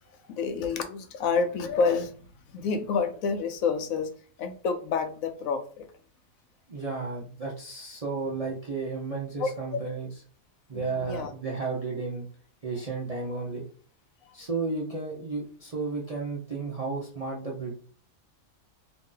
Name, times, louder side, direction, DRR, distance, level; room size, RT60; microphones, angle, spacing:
voice 1, 0.3-2.2 2.5-4.1 4.4-5.9 9.4-9.8 10.7-11.3 14.3-14.4, left 5 dB, 75° left, 7 dB, 1.0 m, -28 dB
voice 2, 6.7-10.1 10.7-12.3 12.6-13.6 14.3-17.7, right 4 dB, 35° right, -3 dB, 0.6 m, -33 dB
3.0 x 2.6 x 3.8 m, 0.43 s
omnidirectional pair, 1.5 m